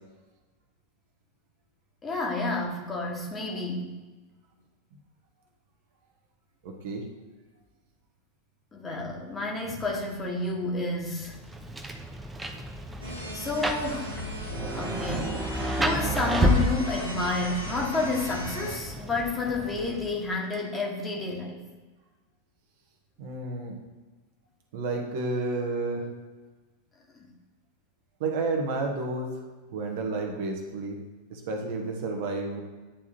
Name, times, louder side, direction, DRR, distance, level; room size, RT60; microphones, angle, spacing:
voice 1, 2.0-3.9 8.7-11.3 13.3-14.1 14.7-15.4 15.7-21.6 27.2-27.3, left 3 dB, 15° left, -1 dB, 1.3 m, -30 dB
voice 2, 6.6-7.1 23.2-23.8 24.7-26.0 28.2-29.3 29.7-31.0 31.3-32.6, right 3 dB, 50° right, 2 dB, 1.0 m, -31 dB
Rain, 11.2-20.3, equal, 10° right, 0.6 m, -31 dB
sound 1, 13.0-18.8, equal, 85° right, 1.3 m, -37 dB
10.0 x 3.6 x 2.9 m, 1.3 s
figure-of-eight pair, 90°, 0 cm